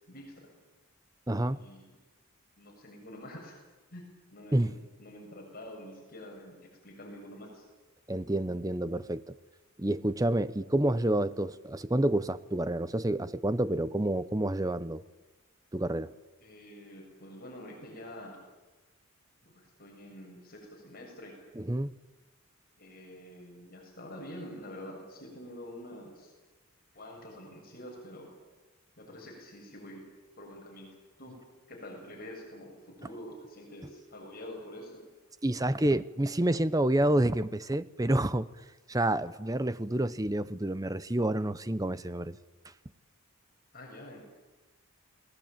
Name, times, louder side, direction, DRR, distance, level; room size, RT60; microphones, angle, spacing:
voice 1, 0.1-0.5 1.5-1.9 2.6-3.6 3.9-6.6 6.8-7.7 16.4-18.4 19.4-21.4 22.8-26.3 26.9-28.3 29.0-30.1 30.4-31.4 31.7-35.0 43.7-44.2, left 1 dB, 45° left, 7.0 m, -47 dB
voice 2, 1.3-1.6 4.5-4.7 8.1-9.3 9.8-15.0 15.7-16.1 21.6-21.9 35.4-38.5 38.9-42.4, right 1 dB, 15° right, 0.8 m, -28 dB
29.5 x 20.0 x 9.0 m
head